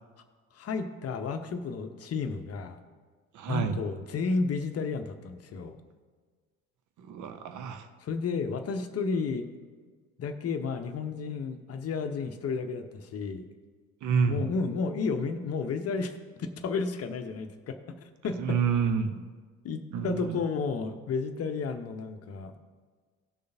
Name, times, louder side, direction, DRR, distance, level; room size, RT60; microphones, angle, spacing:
voice 1, 0.5-2.8 3.5-5.8 8.0-9.5 10.2-13.5 14.2-18.0 18.2-18.6 19.6-22.5, left 4 dB, 35° left, 7 dB, 0.9 m, -32 dB
voice 2, 3.3-3.7 7.1-7.8 14.0-14.4 18.4-19.1 19.9-20.4, right 6 dB, 45° right, 9 dB, 0.8 m, -28 dB
18.0 x 6.6 x 2.7 m, 1.5 s
figure-of-eight pair, 60°, 42 cm